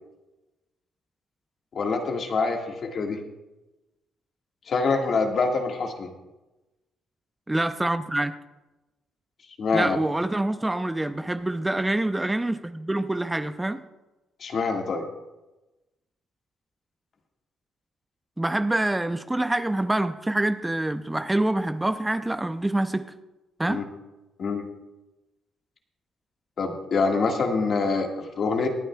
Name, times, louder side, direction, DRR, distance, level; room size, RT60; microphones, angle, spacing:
voice 1, 1.7-3.2 4.7-6.1 9.6-10.0 14.4-15.0 23.7-23.8 24.4-24.7 26.6-28.7, left 4 dB, 55° left, 3 dB, 1.6 m, -25 dB
voice 2, 7.5-8.3 9.7-13.8 18.4-23.1 23.6-23.8, right 1 dB, 10° right, 10 dB, 0.5 m, -26 dB
23.0 x 8.9 x 2.3 m, 1.0 s
cardioid pair, 90°, 0 cm